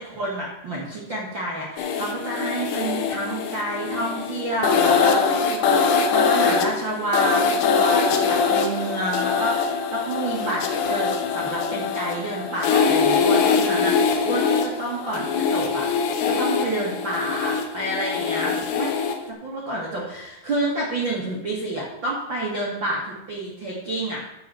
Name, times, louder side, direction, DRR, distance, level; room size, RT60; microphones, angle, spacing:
voice 1, 0.0-15.9 16.2-18.9 19.3-24.2, right 1 dB, 75° right, -4 dB, 1.0 m, -29 dB
sound 1, 1.8-19.3, left 5 dB, 75° left, 2.8 m, -23 dB
11.5 x 4.0 x 7.7 m, 0.88 s
omnidirectional pair, 5.3 m